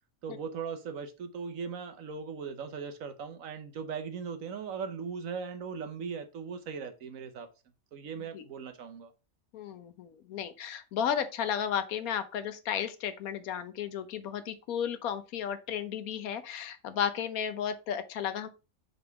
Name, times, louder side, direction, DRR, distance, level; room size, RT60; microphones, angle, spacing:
voice 1, 0.2-7.5 7.9-9.1, right 6 dB, 70° right, 1.2 m, -39 dB
voice 2, 9.5-18.5, left 8 dB, 80° left, 1.2 m, -33 dB
5.2 x 4.0 x 4.6 m
omnidirectional pair, 1.5 m